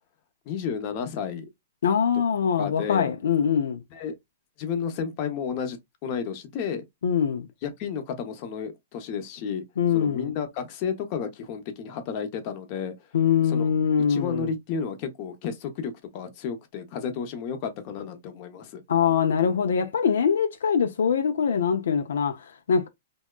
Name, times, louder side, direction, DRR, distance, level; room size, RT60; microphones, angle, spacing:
voice 1, 0.5-1.5 2.6-3.1 3.9-4.1 4.6-6.8 7.6-9.6 9.9-12.9 13.5-13.7 14.1-18.8, left 6 dB, 45° left, 0.7 m, -32 dB
voice 2, 1.8-3.8 7.0-7.5 9.8-10.3 13.1-14.5 18.9-22.9, left 7 dB, 80° left, 0.4 m, -23 dB
2.7 x 2.2 x 2.2 m
hypercardioid pair, 135°, 0 cm